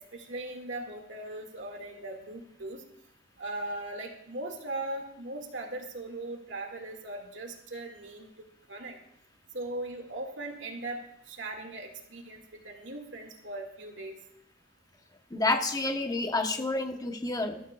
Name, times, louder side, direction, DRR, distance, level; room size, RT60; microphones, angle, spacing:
voice 1, 0.1-2.8 3.4-8.3 8.7-9.0 9.5-11.0 11.3-14.2, right 2 dB, 80° right, 2 dB, 2.1 m, -39 dB
voice 2, 15.3-17.6, left 2 dB, 20° left, 5 dB, 1.0 m, -29 dB
22.0 x 13.0 x 2.4 m, 0.69 s
head